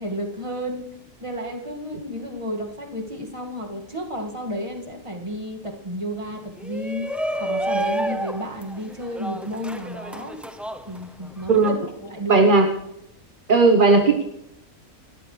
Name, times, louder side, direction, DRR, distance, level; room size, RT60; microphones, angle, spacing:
voice 1, 0.0-7.1 7.4-10.4 10.9-12.5, equal, 20° right, 1 dB, 2.2 m, -32 dB
Shout, 6.6-11.7, right 1 dB, ahead, 0.4 m, -30 dB
voice 2, 12.3-12.7 13.5-14.2, right 3 dB, 40° right, 5 dB, 1.3 m, -15 dB
30.0 x 13.5 x 3.4 m, 0.83 s
omnidirectional pair, 1.4 m